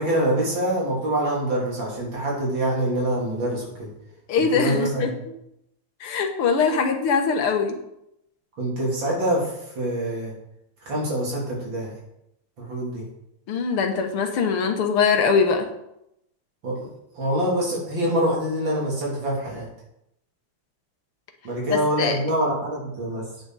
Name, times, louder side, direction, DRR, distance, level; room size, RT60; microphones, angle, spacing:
voice 1, 0.0-3.9 4.5-5.2 8.6-10.3 10.9-11.9 12.6-13.0 16.6-16.9 17.2-19.7 21.4-23.3, right 1 dB, 60° right, -3 dB, 3.9 m, -25 dB
voice 2, 4.3-5.1 6.0-7.8 13.5-15.7 21.7-22.2, left 5 dB, 80° left, 5 dB, 2.1 m, -22 dB
9.7 x 9.0 x 4.1 m, 0.82 s
omnidirectional pair, 2.4 m